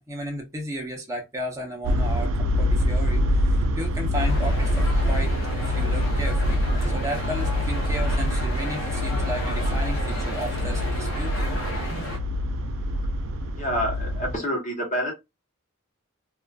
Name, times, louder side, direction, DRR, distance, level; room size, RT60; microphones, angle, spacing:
voice 1, 0.0-11.5, equal, 15° right, 0.6 m, -34 dB
sound 1, 1.8-14.4, left 1 dB, 75° right, 0.3 m, -25 dB
sound 2, 4.1-12.2, equal, 75° left, 0.8 m, -33 dB
voice 2, 13.5-15.1, equal, 35° left, 0.9 m, -27 dB
2.3 x 2.3 x 2.3 m
head